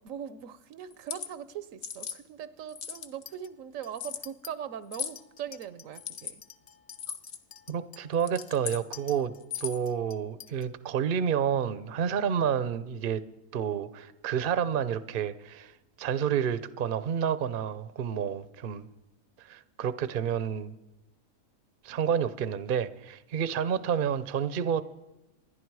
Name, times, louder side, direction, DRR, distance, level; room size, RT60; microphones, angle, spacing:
voice 1, 0.0-6.4, right 9 dB, 70° right, 15 dB, 1.1 m, -40 dB
sound 1, 0.9-1.3 1.8-2.2 2.7-3.2 3.9-4.2 4.9-5.2 5.9-6.3 6.9-7.4 8.1-8.8 9.4-9.9, left 8 dB, 55° left, 1.2 m, -37 dB
Chink clink, 2.9-3.5 3.8-4.5 4.9-10.7, left 6 dB, 40° left, 0.5 m, -50 dB
voice 2, 7.7-9.3 9.6-13.2 13.5-15.7 16.0-18.9 19.4-20.7 21.8-24.8, right 8 dB, 50° right, 15 dB, 0.7 m, -29 dB
28.0 x 11.0 x 4.7 m, 0.94 s
omnidirectional pair, 1.5 m